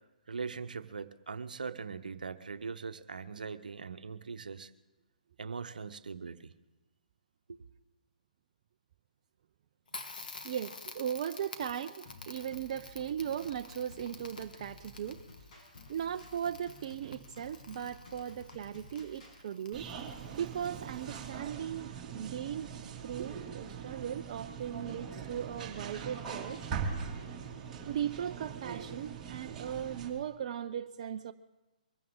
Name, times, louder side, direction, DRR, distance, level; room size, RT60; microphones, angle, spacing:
voice 1, 0.3-4.7 5.4-6.5 7.5-7.6, right 5 dB, 75° right, 1.0 m, -41 dB
Crackle, 9.9-21.5, left 3 dB, 75° left, 1.9 m, -50 dB
voice 2, 10.4-15.2 15.9-22.7 23.0-26.6 27.9-31.3, right 9 dB, 45° right, 0.5 m, -38 dB
sound 1, 12.1-19.4, left 2 dB, 55° left, 5.7 m, -54 dB
sound 2, 19.7-30.1, right 6 dB, 15° right, 2.7 m, -41 dB
23.5 x 16.0 x 3.8 m
figure-of-eight pair, 140°, 5 cm